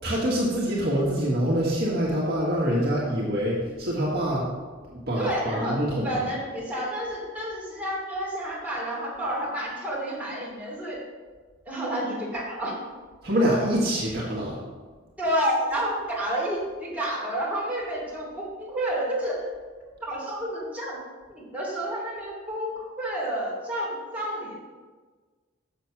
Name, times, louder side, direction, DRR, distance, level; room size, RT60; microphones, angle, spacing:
voice 1, 0.0-4.5 4.9-6.2 13.2-14.6, equal, 50° right, -5 dB, 1.7 m, -25 dB
voice 2, 5.2-11.0 11.6-12.9 15.2-19.4 20.0-21.0 21.3-24.6, right 1 dB, 5° right, -7 dB, 2.9 m, -30 dB
7.1 x 6.6 x 5.9 m, 1.4 s
head